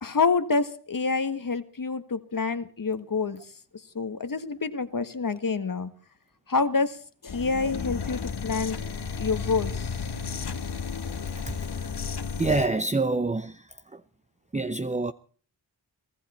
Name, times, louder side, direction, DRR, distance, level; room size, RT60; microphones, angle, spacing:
voice 1, 0.0-3.4 3.9-5.9 6.5-7.0 7.2-8.8 9.2-9.9, left 4 dB, 50° left, 1.6 m, -27 dB
sound 1, 7.3-12.7, left 5 dB, 65° left, 1.6 m, -33 dB
voice 2, 12.4-13.6 14.5-15.1, right 3 dB, 15° right, 0.8 m, -26 dB
23.0 x 14.5 x 4.3 m
cardioid pair, 45°, 42 cm